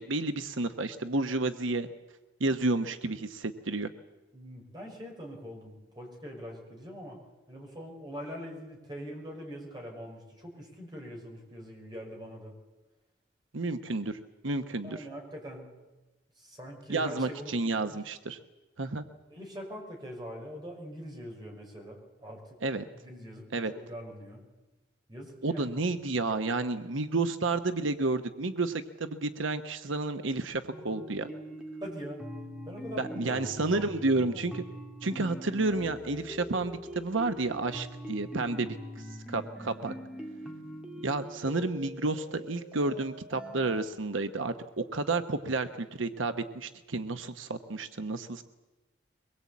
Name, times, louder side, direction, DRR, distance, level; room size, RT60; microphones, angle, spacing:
voice 1, 0.0-1.9 2.4-3.9 13.5-15.0 16.9-18.4 18.8-19.0 22.6-22.8 23.5-23.7 25.4-31.3 33.0-34.6 35.0-39.9 41.0-48.4, right 3 dB, 85° right, 9 dB, 1.0 m, -31 dB
voice 2, 4.3-7.2 7.5-12.5 14.8-15.7 16.4-17.5 17.8-18.0 19.3-22.6 23.0-24.5 25.1-25.7 31.8-32.2 32.6-34.5, equal, 20° right, 0 dB, 5.5 m, -43 dB
sound 1, 30.7-43.8, equal, 5° right, 2.1 m, -43 dB
23.0 x 21.0 x 8.5 m, 1.1 s
head